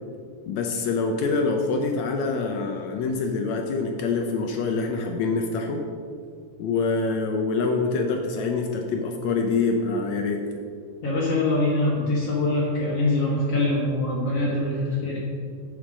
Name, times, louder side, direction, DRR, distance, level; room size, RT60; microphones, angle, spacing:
voice 1, 0.5-5.9 6.6-10.4, left 4 dB, 75° left, 3 dB, 1.8 m, -25 dB
voice 2, 11.0-15.2, left 2 dB, 55° left, -6 dB, 2.4 m, -24 dB
7.4 x 6.9 x 6.3 m, 2.2 s
omnidirectional pair, 3.7 m